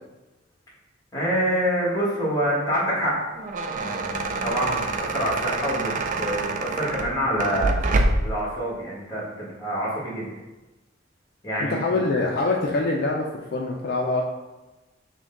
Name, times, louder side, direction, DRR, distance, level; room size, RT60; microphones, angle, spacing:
voice 1, 1.1-3.2 3.8-5.9 6.2-7.8 8.2-10.3 11.4-11.8, equal, 20° left, -5 dB, 1.5 m, -26 dB
sound 1, 3.2-8.4, right 2 dB, 40° right, 0.4 m, -26 dB
voice 2, 11.6-13.3 13.5-14.2, left 3 dB, 55° left, -1 dB, 0.4 m, -24 dB
6.0 x 2.2 x 3.7 m, 1.1 s
head